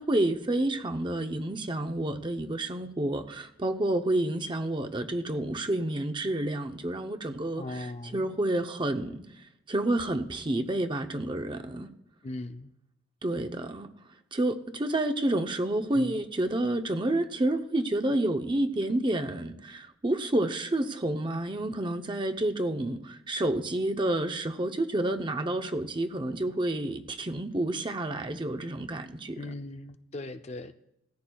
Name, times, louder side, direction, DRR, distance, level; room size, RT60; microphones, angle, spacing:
voice 1, 0.0-11.9 13.2-13.9 14.3-29.4, right 1 dB, 25° right, 6 dB, 0.7 m, -29 dB
voice 2, 7.6-8.4 12.2-12.7 15.9-16.2 29.4-30.7, left 2 dB, 35° left, 8 dB, 0.5 m, -39 dB
17.5 x 14.0 x 2.3 m, 0.81 s
head